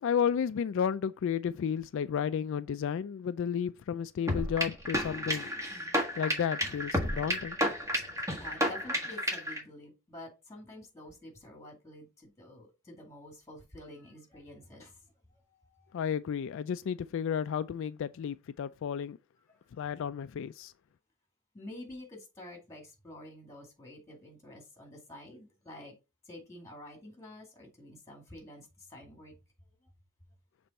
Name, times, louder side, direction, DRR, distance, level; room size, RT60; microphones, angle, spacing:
voice 1, 0.0-5.5 6.2-7.6 15.9-19.2 19.7-20.7, left 8 dB, 65° left, 0.3 m, -32 dB
sound 1, 4.3-9.6, equal, 15° right, 1.6 m, -31 dB
voice 2, 8.4-14.9 15.7-16.0 21.5-26.0 26.3-29.3, left 1 dB, 15° left, 2.1 m, -49 dB
6.8 x 3.4 x 4.1 m
head